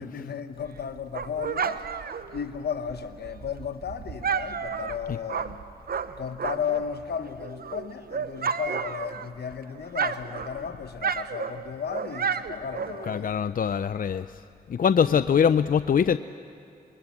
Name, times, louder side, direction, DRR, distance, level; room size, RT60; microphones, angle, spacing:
voice 1, 0.0-1.8 2.3-5.6 6.2-13.3 15.0-15.2, left 7 dB, 75° left, 1.1 m, -34 dB
Dog, 0.6-6.9 7.3-9.5 9.8-13.3, right 6 dB, 65° right, 0.9 m, -32 dB
voice 2, 13.0-14.3 14.7-16.2, left 7 dB, 60° left, 0.5 m, -23 dB
27.5 x 22.0 x 7.2 m
cardioid pair, 45°, 17 cm